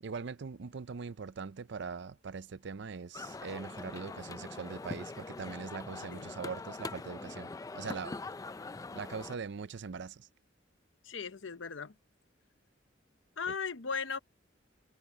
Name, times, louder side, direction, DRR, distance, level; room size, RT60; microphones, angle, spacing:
voice 1, 0.0-7.5 7.7-8.2 8.9-10.3, right 5 dB, 65° right, 0.5 m, -41 dB
sound 1, 3.1-9.4, left 3 dB, 20° left, 0.4 m, -43 dB
voice 2, 11.0-11.9 13.4-14.2, left 5 dB, 75° left, 0.9 m, -37 dB
head